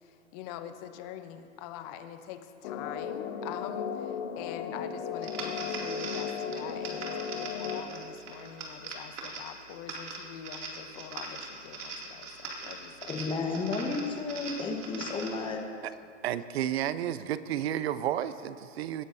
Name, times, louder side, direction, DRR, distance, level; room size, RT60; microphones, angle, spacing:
voice 1, 0.0-13.1, left 10 dB, 30° left, 9 dB, 0.8 m, -44 dB
sound 1, 2.6-7.8, left 7 dB, 50° left, 1.1 m, -35 dB
sound 2, 5.2-15.5, right 3 dB, 70° right, 2.6 m, -41 dB
voice 2, 13.1-15.6, left 4 dB, 15° left, 3 dB, 1.1 m, -32 dB
voice 3, 16.2-19.0, right 11 dB, 55° right, 15 dB, 0.6 m, -31 dB
18.5 x 11.5 x 2.7 m, 2.4 s
hypercardioid pair, 135°, 38 cm